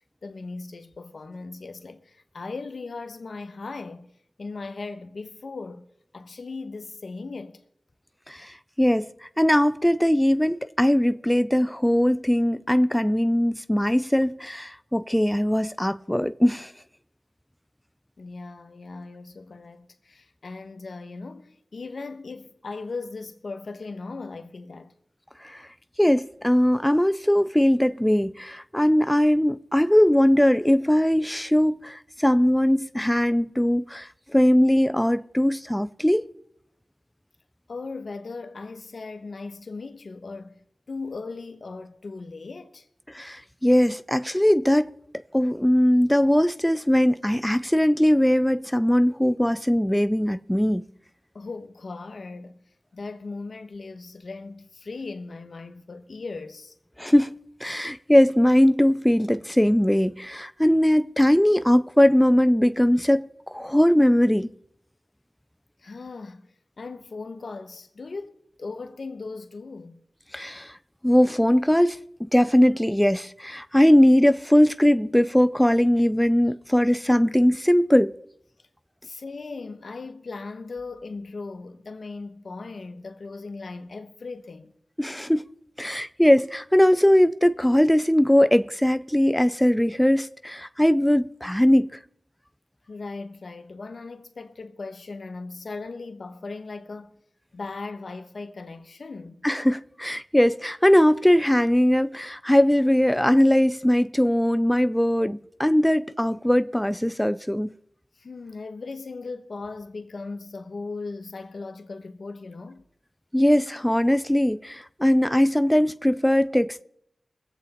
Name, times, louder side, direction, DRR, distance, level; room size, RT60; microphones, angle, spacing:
voice 1, 0.2-7.6 18.2-24.9 25.6-25.7 37.7-42.9 51.3-56.7 65.8-70.0 79.0-84.7 92.9-97.2 97.5-99.5 108.1-112.8, left 3 dB, 70° left, 1.1 m, -38 dB
voice 2, 8.3-16.7 25.4-25.6 26.0-36.2 43.1-44.9 45.3-50.8 57.0-57.3 57.6-63.3 63.5-64.5 70.3-70.8 71.0-78.1 85.0-85.5 85.8-92.0 99.4-107.7 113.3-116.8, equal, 10° left, 0.5 m, -20 dB
22.0 x 8.0 x 4.3 m
cardioid pair, 40°, 0 cm